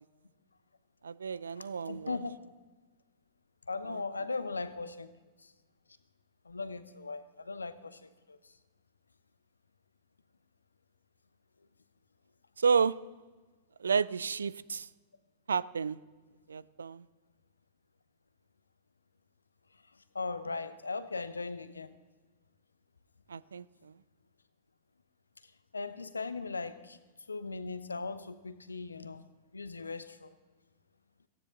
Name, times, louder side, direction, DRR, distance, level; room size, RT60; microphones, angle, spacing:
voice 1, 1.0-2.2 3.9-4.0 12.6-13.0 13.8-14.9 15.5-16.0 16.5-17.1 23.3-23.9, right 5 dB, 70° right, 20 dB, 0.4 m, -31 dB
voice 2, 1.6-2.4 3.7-5.1 6.5-8.4 20.1-21.9 25.7-27.0 27.3-29.2 29.5-30.3, left 3 dB, 80° left, 14 dB, 0.8 m, -38 dB
18.0 x 15.5 x 3.9 m, 1.3 s
figure-of-eight pair, 95°, 0 cm